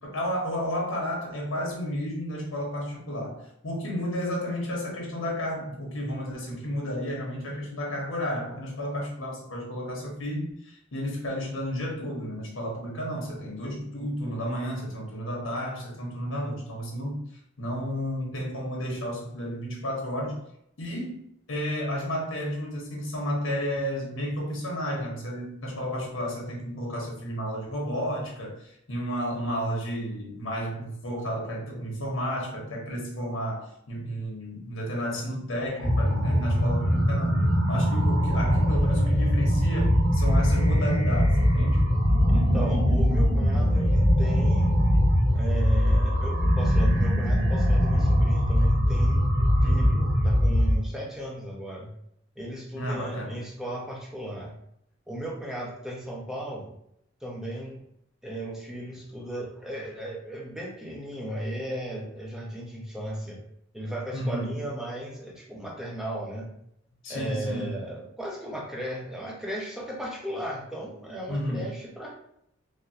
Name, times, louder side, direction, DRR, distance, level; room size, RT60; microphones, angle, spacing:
voice 1, 0.0-17.2 17.6-20.4 20.8-21.2 21.5-37.4 37.7-41.9 49.6-49.9 52.7-53.4 64.1-64.5 67.0-67.8 71.3-71.7, equal, 75° left, -1 dB, 1.0 m, -32 dB
sound 1, 35.8-50.8, equal, 65° right, 1.0 m, -22 dB
voice 2, 42.3-44.8 45.3-49.3 49.6-51.9 52.4-54.5 55.1-56.7 57.2-57.8 58.2-63.4 63.7-66.5 67.1-72.1, right 1 dB, 5° right, -3 dB, 0.6 m, -36 dB
3.5 x 2.1 x 2.7 m, 0.74 s
head